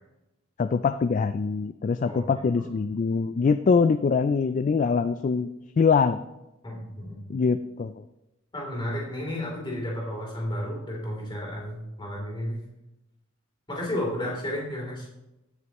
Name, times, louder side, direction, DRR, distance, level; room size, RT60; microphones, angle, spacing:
voice 1, 0.6-5.5 5.8-6.2 7.3-7.9, left 5 dB, 40° left, 11 dB, 0.3 m, -23 dB
voice 2, 2.0-2.6 6.6-7.4 8.5-12.6 13.7-15.1, left 1 dB, 25° left, -2 dB, 3.1 m, -32 dB
16.5 x 6.5 x 3.0 m, 0.95 s
head